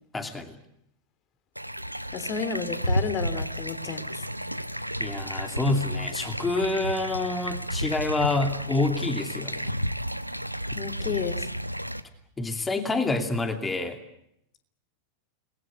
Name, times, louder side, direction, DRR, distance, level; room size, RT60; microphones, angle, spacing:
voice 1, 0.1-0.6 5.0-9.7 12.4-14.0, left 2 dB, 15° left, 7 dB, 2.7 m, -27 dB
sound 1, 1.6-12.0, equal, 90° right, 1.0 m, -32 dB
voice 2, 2.1-4.2 10.7-11.5, left 6 dB, 35° left, 11 dB, 3.1 m, -32 dB
29.0 x 21.0 x 8.4 m, 0.75 s
figure-of-eight pair, 90°, 0 cm